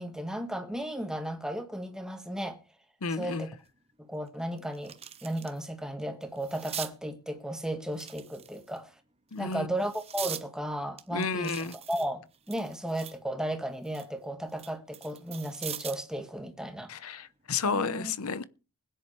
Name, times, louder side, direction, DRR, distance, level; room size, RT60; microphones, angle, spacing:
voice 1, 0.0-2.6 3.1-3.5 4.0-4.9 5.2-8.9 9.4-11.6 11.9-16.9 17.6-18.1, right 1 dB, 5° right, 1.6 m, -35 dB
voice 2, 3.0-3.5 9.3-9.7 11.1-11.7 16.9-18.4, left 4 dB, 80° left, 0.9 m, -31 dB
sound 1, 3.6-3.7 4.2-5.7 6.0-6.9 7.9-8.8 9.4-10.5 11.0-13.2 13.6-16.1 17.5-17.7, right 9 dB, 30° right, 0.9 m, -42 dB
20.5 x 10.5 x 3.3 m
head